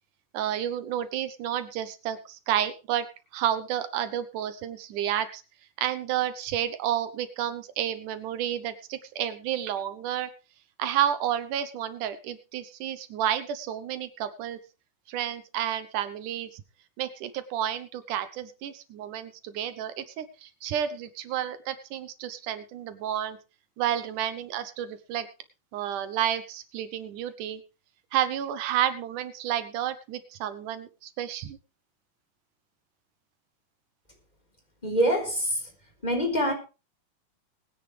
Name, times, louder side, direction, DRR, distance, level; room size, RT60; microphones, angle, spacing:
voice 1, 0.3-3.1 3.3-5.4 5.8-10.3 10.8-14.6 15.1-16.6 17.0-23.4 23.8-25.3 25.7-27.6 28.1-31.6, right 10 dB, 80° right, 12 dB, 2.5 m, -30 dB
voice 2, 34.8-35.5 36.0-36.5, equal, 15° left, 3 dB, 4.1 m, -24 dB
21.5 x 10.0 x 3.3 m, 0.32 s
omnidirectional pair, 3.6 m